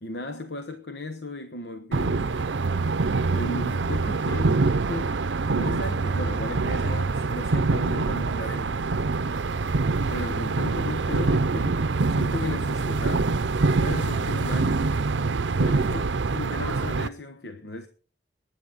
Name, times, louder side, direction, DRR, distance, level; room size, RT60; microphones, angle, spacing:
voice 1, 0.0-2.3 3.3-5.2 5.5-8.9 10.1-11.8 12.1-13.3 13.8-14.8 15.6-17.9, left 2 dB, 65° left, 1.1 m, -35 dB
sound 1, 1.9-17.1, right 3 dB, 80° right, 0.6 m, -25 dB
20.5 x 9.6 x 4.1 m
head